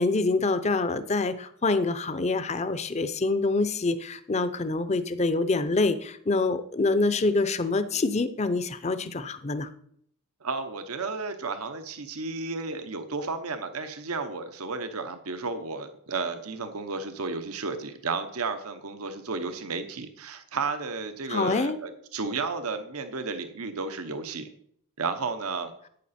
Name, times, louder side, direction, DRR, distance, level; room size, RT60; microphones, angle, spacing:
voice 1, 0.0-9.7 21.3-21.8, left 3 dB, 30° left, 12 dB, 0.6 m, -26 dB
voice 2, 10.4-24.5 25.0-25.7, right 4 dB, 85° right, 9 dB, 0.9 m, -33 dB
11.5 x 8.7 x 4.3 m, 0.67 s
head